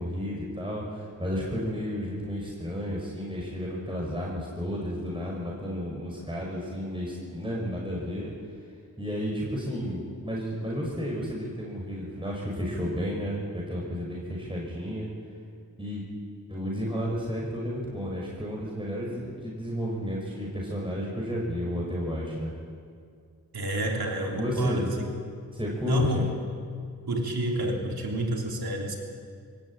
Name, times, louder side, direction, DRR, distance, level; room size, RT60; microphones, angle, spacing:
voice 1, 0.0-8.3 9.0-15.1 15.8-16.0 16.5-22.5 24.3-24.9 25.5-26.3, equal, 15° right, -3 dB, 5.7 m, -32 dB
voice 2, 23.5-25.1 25.9-26.3 27.1-29.0, right 1 dB, 85° right, 0 dB, 3.3 m, -29 dB
23.5 x 18.0 x 8.9 m, 2.2 s
cardioid pair, 60°, 36 cm